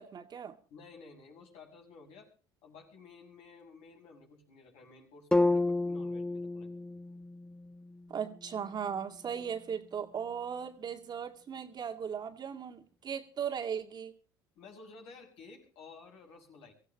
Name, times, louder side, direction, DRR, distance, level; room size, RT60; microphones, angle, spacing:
voice 1, 0.0-0.5 8.1-14.1, right 7 dB, 40° right, 2.1 m, -37 dB
voice 2, 0.7-2.3 2.6-6.7 14.6-16.7, left 4 dB, 65° left, 6.8 m, -53 dB
sound 1, 5.3-9.4, left 2 dB, 5° left, 1.0 m, -32 dB
24.0 x 15.5 x 2.9 m
supercardioid pair, 80°, 11 cm